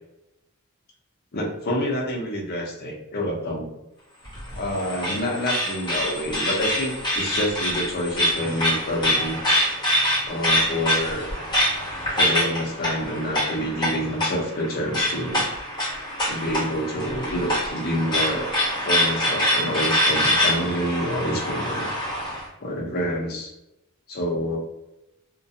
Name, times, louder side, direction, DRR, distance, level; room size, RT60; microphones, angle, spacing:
voice 1, 1.3-3.7 4.6-9.4 10.3-11.3 12.2-15.5 16.3-18.5 18.8-21.9 22.6-23.5 24.1-24.6, equal, 45° left, -1 dB, 0.7 m, -27 dB
sound 1, 4.2-22.4, left 1 dB, 20° left, 1.1 m, -25 dB
2.4 x 2.2 x 2.7 m, 0.89 s
head